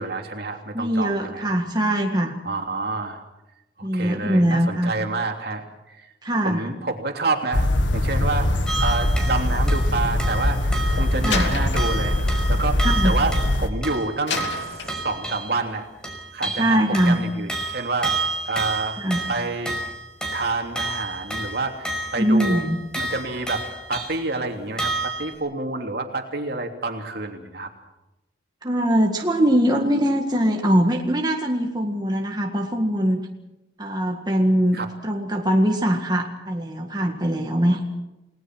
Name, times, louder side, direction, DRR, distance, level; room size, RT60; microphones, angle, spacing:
voice 1, 0.0-1.5 2.4-3.2 3.8-6.1 6.4-7.7 7.9-8.5 8.8-12.2 12.5-13.3 13.6-14.4 15.0-15.9 16.3-18.2 18.5-19.0 19.3-19.8 20.3-22.6 22.9-27.7 34.7-34.9, right 3 dB, 60° right, 3 dB, 3.1 m, -28 dB
voice 2, 0.7-2.4 3.8-5.0 6.2-6.7 11.2-11.5 12.8-13.2 16.6-17.2 19.0-19.3 22.2-22.8 28.6-33.2 33.8-37.8, equal, 20° right, 1 dB, 1.8 m, -22 dB
sound 1, 7.5-13.7, left 1 dB, 90° left, 1.9 m, -22 dB
sound 2, 8.7-9.9 10.2-15.6 16.0-24.3 24.8-25.3, right 2 dB, 5° left, 5.4 m, -30 dB
Slam, 11.3-13.7 14.3-15.5, left 5 dB, 75° left, 2.9 m, -32 dB
30.0 x 19.0 x 6.2 m, 0.98 s
head